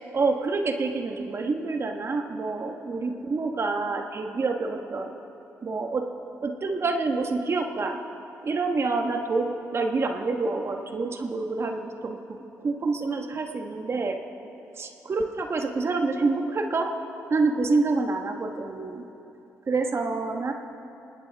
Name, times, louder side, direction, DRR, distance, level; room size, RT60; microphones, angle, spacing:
voice 1, 0.1-5.1 5.6-6.1 6.4-8.0 8.4-14.2 14.8-16.9 17.3-19.0 19.7-20.5, right 3 dB, 45° right, 4 dB, 1.3 m, -27 dB
19.5 x 18.0 x 3.5 m, 3.0 s
cardioid pair, 65°, 6 cm